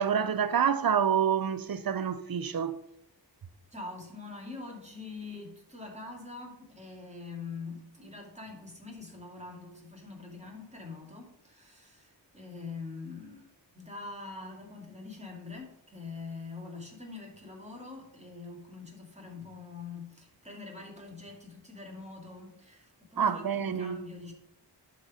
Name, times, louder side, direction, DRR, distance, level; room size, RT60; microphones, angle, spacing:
voice 1, 0.0-2.8 23.2-24.0, right 7 dB, 55° right, 0.7 m, -27 dB
voice 2, 3.7-13.5 13.7-24.3, left 4 dB, 15° right, 2.5 m, -44 dB
11.0 x 4.2 x 5.0 m
wide cardioid pair, 85°, 43 cm